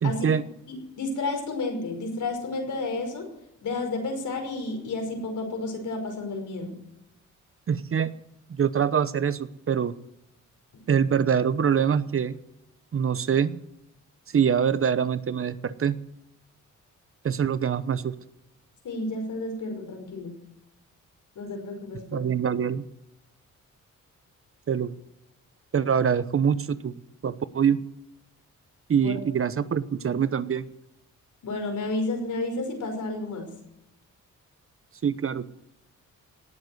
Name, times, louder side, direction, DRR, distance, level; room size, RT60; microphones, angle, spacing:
voice 1, 0.0-0.4 7.7-8.1 8.5-9.9 10.9-12.4 12.9-13.6 14.3-16.0 17.2-18.1 22.1-22.8 24.7-25.0 25.7-27.8 28.9-30.7 35.0-35.5, right 7 dB, 45° right, 15 dB, 0.9 m, -24 dB
voice 2, 0.7-3.3 3.6-6.8 18.8-20.3 21.4-22.3 29.0-29.2 31.4-33.5, left 2 dB, 70° left, 4 dB, 5.4 m, -31 dB
18.5 x 8.1 x 9.3 m, 0.85 s
cardioid pair, 85°, 31 cm